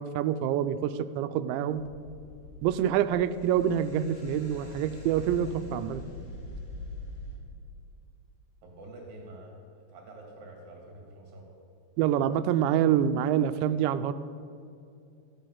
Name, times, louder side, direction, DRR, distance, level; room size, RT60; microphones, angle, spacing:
voice 1, 0.0-1.8 2.6-6.0 12.0-14.1, right 10 dB, 85° right, 12 dB, 2.8 m, -26 dB
sound 1, 1.7-7.4, left 2 dB, 70° left, 5.0 m, -43 dB
voice 2, 8.6-11.5, right 1 dB, 55° right, 0 dB, 4.0 m, -47 dB
14.0 x 8.6 x 7.3 m, 2.4 s
omnidirectional pair, 5.1 m